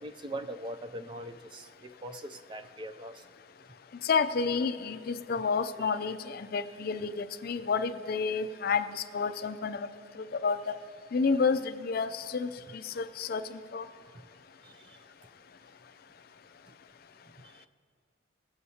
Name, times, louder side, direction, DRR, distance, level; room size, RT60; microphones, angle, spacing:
voice 1, 0.0-3.2 7.0-7.1 14.6-15.0, right 1 dB, 25° right, 9 dB, 0.3 m, -41 dB
voice 2, 4.0-9.9 10.4-10.8 11.1-12.5 13.0-13.4 13.7-13.9, left 5 dB, 50° left, 12 dB, 0.4 m, -30 dB
19.0 x 7.9 x 2.8 m, 2.1 s
head